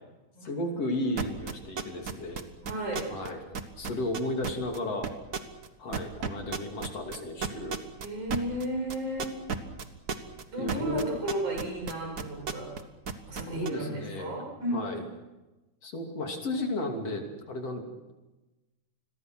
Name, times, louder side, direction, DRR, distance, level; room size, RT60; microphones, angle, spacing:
voice 1, 0.4-2.4 3.1-5.1 5.8-7.8 10.6-11.1 13.5-14.4 14.7-15.0 15.8-17.8, left 1 dB, 55° left, 3 dB, 3.9 m, -34 dB
sound 1, 1.2-3.3 3.5-4.8 5.0-5.7 5.9-12.8 13.1-13.7, right 5 dB, 45° right, 1.4 m, -32 dB
voice 2, 2.6-3.1 8.0-9.3 10.5-12.7 13.3-15.0, right 1 dB, 75° right, 1 dB, 8.4 m, -33 dB
29.0 x 22.0 x 6.1 m, 1.1 s
omnidirectional pair, 3.5 m